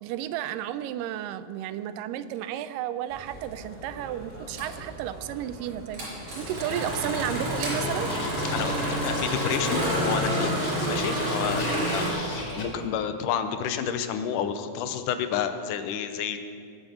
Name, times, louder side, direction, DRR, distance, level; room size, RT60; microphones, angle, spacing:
voice 1, 0.0-6.0 6.4-8.1 11.7-11.9, right 12 dB, 90° right, 12 dB, 2.2 m, -33 dB
sound 1, 3.1-12.9, equal, 15° left, 2.6 m, -43 dB
Engine starting, 4.5-4.8 5.9-12.1, equal, 60° right, 5.5 m, -28 dB
Scratching (performance technique), 8.1-12.6, left 2 dB, 40° left, 2.5 m, -37 dB
voice 2, 9.0-10.5 10.9-16.4, left 8 dB, 80° left, 9 dB, 2.3 m, -30 dB
20.0 x 7.9 x 5.7 m, 2.3 s
omnidirectional pair, 3.8 m